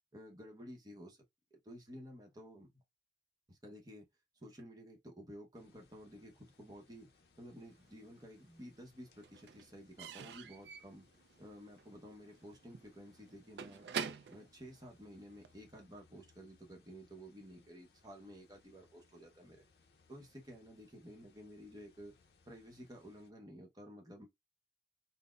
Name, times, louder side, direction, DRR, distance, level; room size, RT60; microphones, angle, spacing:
voice 1, 0.1-1.2 1.6-2.8 3.5-4.0 4.4-7.1 7.4-11.1 11.4-13.9 14.3-19.6 20.1-22.1 22.5-24.3, equal, 20° right, 0.8 m, -53 dB
sound 1, 5.5-23.3, left 4 dB, 60° left, 0.6 m, -70 dB
Slam / Squeak / Wood, 7.7-8.6 8.8-15.6, right 6 dB, 70° right, 0.3 m, -47 dB
3.9 x 2.0 x 2.3 m
head